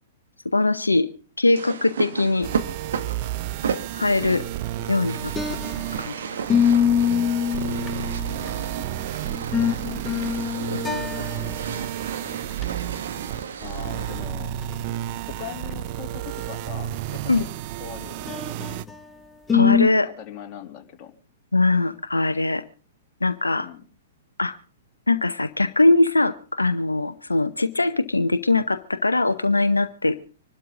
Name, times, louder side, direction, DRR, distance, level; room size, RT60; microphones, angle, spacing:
voice 1, 0.4-1.1 1.4-2.5 3.9-4.4 4.9-6.2 10.7-11.0 17.3-17.4 19.5-20.1 21.5-22.6 23.2-23.7 24.4-24.6 25.1-30.2, left 2 dB, 85° left, 11 dB, 0.7 m, -21 dB
sound 1, 1.5-14.4, right 6 dB, 65° right, 1.7 m, -34 dB
sound 2, 2.4-18.8, right 12 dB, 40° right, 0.7 m, -32 dB
sound 3, 5.2-6.1 6.5-8.7 9.3-11.7 12.0-12.1 12.5-12.6 14.1-14.2 14.6-14.7 18.3-19.0 19.5-19.9, left 8 dB, 10° left, 1.0 m, -24 dB
voice 2, 9.6-10.2 13.6-14.6 15.3-17.5 17.8-18.4 20.0-21.1 23.6-23.8, left 9 dB, 30° left, 2 dB, 2.8 m, -40 dB
25.5 x 12.5 x 3.7 m, 0.38 s
figure-of-eight pair, 110°, 0 cm